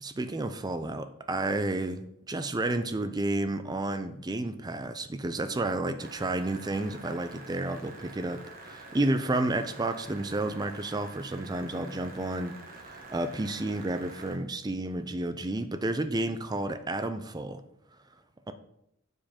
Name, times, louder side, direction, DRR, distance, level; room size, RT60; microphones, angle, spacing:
voice 1, 0.0-2.0 2.3-12.6 12.8-17.6, right 2 dB, 20° right, 10 dB, 0.5 m, -31 dB
sound 1, 6.0-14.4, right 2 dB, 45° right, 1.1 m, -47 dB
7.5 x 4.7 x 4.3 m, 0.77 s
head